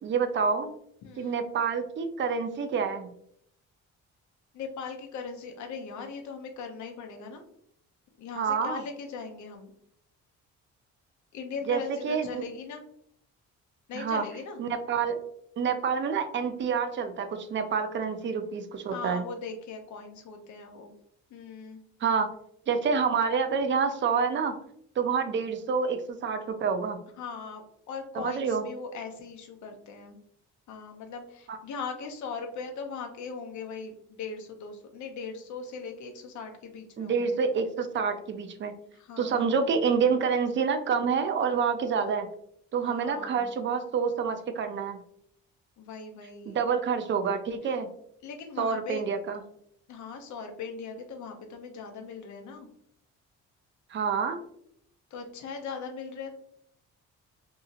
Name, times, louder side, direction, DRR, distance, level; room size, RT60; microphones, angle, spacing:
voice 1, 0.0-0.7 1.2-3.1 8.4-8.8 11.7-12.4 13.9-14.2 14.6-15.2 15.6-19.2 22.0-22.3 22.7-24.5 25.0-27.0 28.1-28.6 31.5-31.6 37.0-38.7 39.2-42.3 42.7-45.0 46.5-47.9 48.6-49.4 53.9-54.4, right 6 dB, 40° right, 7 dB, 0.4 m, -28 dB
voice 2, 1.0-1.4 4.5-7.4 8.2-9.7 11.3-12.8 13.9-14.6 18.9-20.9 21.3-21.8 27.2-30.2 30.7-37.4 38.9-39.7 42.8-43.5 45.8-46.6 47.6-47.8 48.2-49.0 49.9-52.7 55.1-56.3, left 5 dB, 70° left, 4 dB, 0.7 m, -39 dB
2.8 x 2.7 x 2.4 m, 0.71 s
cardioid pair, 90°, 30 cm